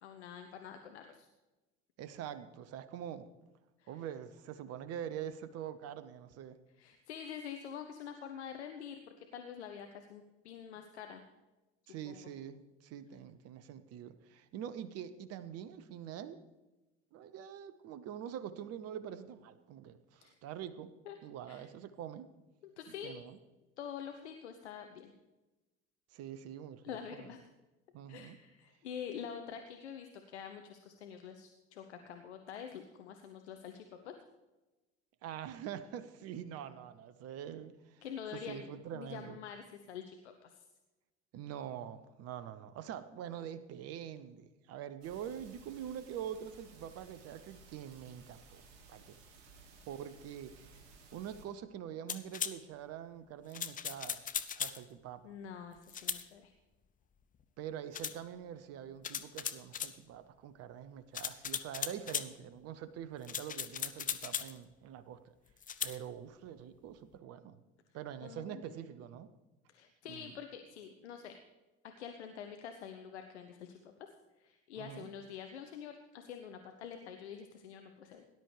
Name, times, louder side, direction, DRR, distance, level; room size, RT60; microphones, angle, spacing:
voice 1, 0.0-1.3 3.8-4.0 6.8-11.2 12.0-12.2 20.2-20.4 21.1-21.2 21.5-21.6 22.8-23.2 23.8-25.1 26.8-27.4 28.1-34.1 38.0-38.7 38.9-40.6 55.2-56.5 68.2-68.8 69.7-71.4 72.0-74.1 74.4-78.2, left 8 dB, 75° left, 6 dB, 0.9 m, -46 dB
voice 2, 2.0-3.3 3.9-6.6 11.9-16.4 17.1-20.9 21.2-22.3 23.0-23.4 26.1-27.3 27.9-28.4 35.2-38.0 38.3-39.4 41.3-48.6 48.9-49.2 49.9-50.8 51.1-54.2 54.5-55.4 57.6-65.3 65.8-67.6 67.9-69.3 70.1-70.3 74.8-75.1, right 9 dB, 45° right, 14 dB, 0.9 m, -45 dB
sound 1, 45.0-51.5, right 4 dB, 60° right, 2.0 m, -58 dB
sound 2, 52.1-52.6 53.5-54.8 55.9-56.2 57.9-58.2 59.0-59.9 61.1-62.3 63.2-64.5 65.6-66.0, left 8 dB, 25° left, 0.6 m, -38 dB
17.5 x 11.0 x 3.3 m, 1.1 s
figure-of-eight pair, 60°, 35 cm